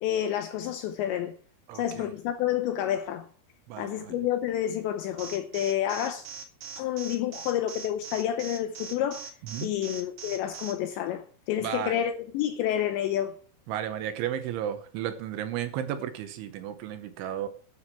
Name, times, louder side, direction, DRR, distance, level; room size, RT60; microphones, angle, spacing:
voice 1, 0.0-1.3 1.7-3.3 3.8-6.3 6.8-9.3 9.6-13.4, left 11 dB, 80° left, 2.6 m, -29 dB
voice 2, 1.7-2.1 3.7-4.2 9.5-9.7 11.6-12.0 13.7-17.5, right 10 dB, 80° right, 3.1 m, -33 dB
Alarm, 5.2-10.7, right 6 dB, 60° right, 1.8 m, -40 dB
12.0 x 9.8 x 4.5 m
omnidirectional pair, 6.0 m